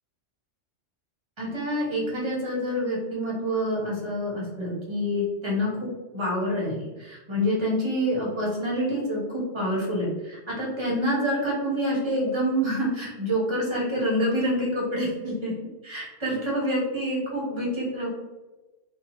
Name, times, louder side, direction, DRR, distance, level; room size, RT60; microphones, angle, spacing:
voice 1, 1.4-5.9 6.1-15.5 15.8-18.1, equal, 25° right, -5 dB, 0.8 m, -27 dB
2.8 x 2.2 x 2.8 m, 1.1 s
omnidirectional pair, 1.3 m